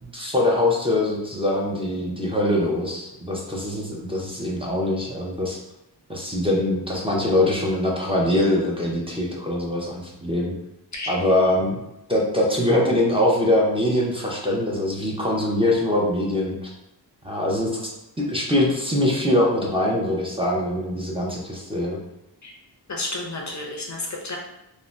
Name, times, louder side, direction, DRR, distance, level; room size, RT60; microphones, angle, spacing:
voice 1, 0.0-5.6 6.1-10.5 11.1-11.8 12.1-16.7 17.2-17.9 18.2-22.0, left 1 dB, 15° right, -3 dB, 0.5 m, -23 dB
voice 2, 22.9-24.4, left 2 dB, 45° left, -1 dB, 0.5 m, -31 dB
2.5 x 2.0 x 3.1 m, 0.88 s
wide cardioid pair, 75°, 42 cm